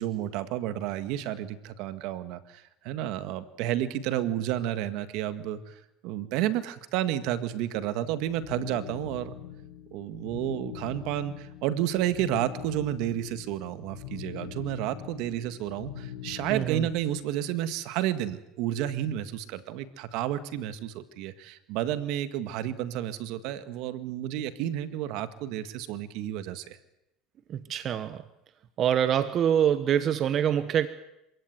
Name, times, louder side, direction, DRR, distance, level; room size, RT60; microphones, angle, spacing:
voice 1, 0.0-5.7 6.0-9.3 9.9-26.8, right 12 dB, 70° right, 11 dB, 1.8 m, -31 dB
sound 1, 8.2-17.5, left 10 dB, 85° left, 6.4 m, -43 dB
voice 2, 16.5-16.9 27.5-28.2 28.8-30.9, right 9 dB, 45° right, 12 dB, 1.2 m, -25 dB
27.0 x 16.5 x 9.5 m, 0.86 s
supercardioid pair, 110°, 0 cm